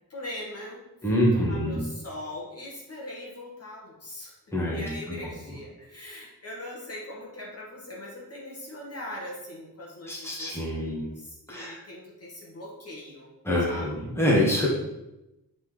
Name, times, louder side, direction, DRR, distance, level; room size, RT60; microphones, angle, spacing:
voice 1, 0.1-4.3 4.7-13.3 13.7-14.0, left 1 dB, 40° left, -3 dB, 1.6 m, -41 dB
voice 2, 1.0-1.8 4.5-4.9 10.1-11.0 11.5-11.8 13.4-14.7, left 1 dB, 5° left, -5 dB, 1.7 m, -25 dB
8.3 x 4.1 x 5.1 m, 0.92 s
wide cardioid pair, 180°, 36 cm